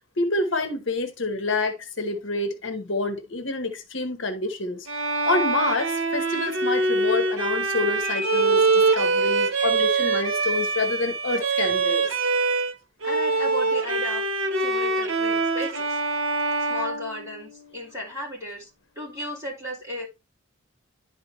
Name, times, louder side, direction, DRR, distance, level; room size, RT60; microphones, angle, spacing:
voice 1, 0.2-4.9 5.2-12.2, left 3 dB, 60° left, 1.1 m, -28 dB
Bowed string instrument, 4.9-12.7 13.0-17.8, right 3 dB, 75° right, 1.1 m, -24 dB
sound 1, 8.0-8.5 8.9-10.8, left 5 dB, 5° left, 1.9 m, -37 dB
voice 2, 13.0-14.2 14.6-16.0 16.7-18.7 19.0-20.1, left 1 dB, 15° right, 4.3 m, -34 dB
10.5 x 4.8 x 3.1 m
head